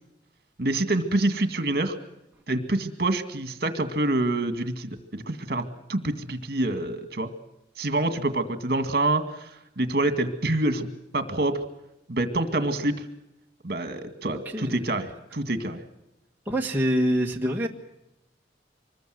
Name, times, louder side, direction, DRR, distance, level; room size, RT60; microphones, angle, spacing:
voice 1, 0.6-1.9 2.5-5.6 5.9-7.3 7.8-10.9 11.1-11.6 12.1-13.0 13.6-15.8, right 2 dB, 55° right, 9 dB, 2.1 m, -26 dB
voice 2, 14.5-15.0 16.5-17.7, equal, 10° right, -1 dB, 1.5 m, -25 dB
25.5 x 21.0 x 7.9 m, 0.89 s
head